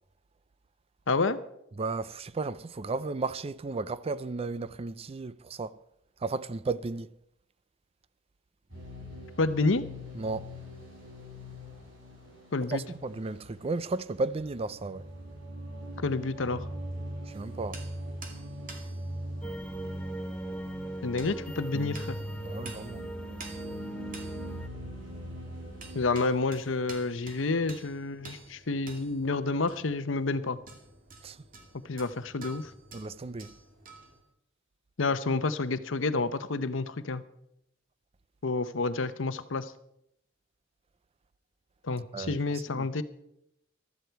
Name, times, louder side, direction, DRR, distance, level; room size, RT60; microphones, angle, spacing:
voice 1, 1.1-1.4 9.4-9.9 12.5-12.8 16.0-16.6 21.0-22.2 25.9-30.6 31.9-32.7 35.0-37.2 38.4-39.7 41.8-43.0, left 3 dB, 70° left, 0.8 m, -29 dB
voice 2, 1.8-5.8 6.2-7.1 10.1-10.5 12.7-15.1 17.3-17.8 22.4-23.0 31.2-31.4 32.9-33.5 42.1-42.9, right 3 dB, 30° right, 0.4 m, -34 dB
sound 1, 8.7-26.0, equal, 70° right, 7.2 m, -42 dB
sound 2, 17.3-34.2, right 3 dB, 45° right, 2.3 m, -50 dB
sound 3, 19.4-24.7, right 1 dB, 5° left, 0.8 m, -39 dB
15.0 x 13.0 x 4.6 m
head